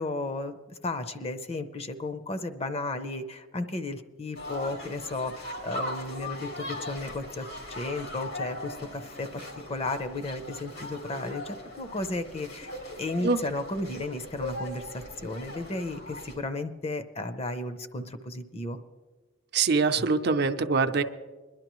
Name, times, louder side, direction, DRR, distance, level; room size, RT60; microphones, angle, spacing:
voice 1, 0.0-12.7 13.0-18.8, left 2 dB, 30° left, 10 dB, 0.6 m, -34 dB
sound 1, 4.4-16.4, left 1 dB, 90° left, 2.8 m, -39 dB
voice 2, 19.5-21.0, right 4 dB, 55° right, 7 dB, 0.6 m, -24 dB
22.0 x 11.5 x 3.1 m, 1.3 s
head